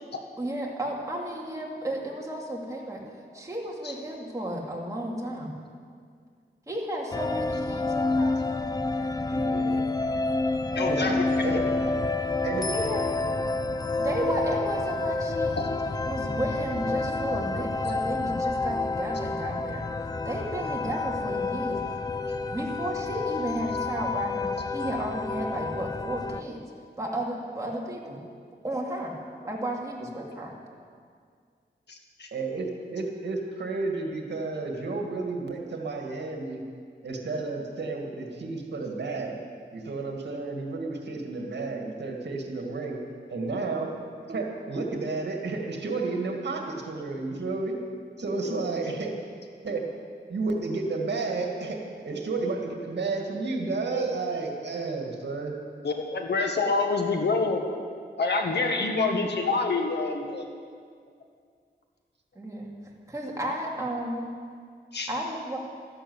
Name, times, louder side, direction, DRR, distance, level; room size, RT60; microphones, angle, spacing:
voice 1, 0.4-3.0 3.3-5.5 6.7-8.4 12.7-13.1 14.0-15.6 16.0-19.9 20.2-21.8 22.5-26.6 27.0-28.2 28.6-29.2 29.4-30.5 59.0-59.2 62.4-62.7 63.1-64.2 65.1-65.6, right 1 dB, 15° right, -2 dB, 2.6 m, -33 dB
sound 1, 7.1-26.4, left 3 dB, 20° left, 0.5 m, -29 dB
voice 2, 9.3-9.8 10.8-11.6 12.4-12.7 32.3-36.6 37.0-39.4 39.7-43.0 43.3-43.9 44.3-47.8 48.2-49.1 49.6-49.8 50.3-55.5, right 3 dB, 70° right, 1 dB, 2.2 m, -31 dB
voice 3, 10.8-11.6 15.6-15.7 31.9-32.3 55.8-57.6 58.2-60.4 64.9-65.1, left 3 dB, 70° left, 3 dB, 1.7 m, -27 dB
13.0 x 11.5 x 8.0 m, 2.1 s
wide cardioid pair, 120°, 18 cm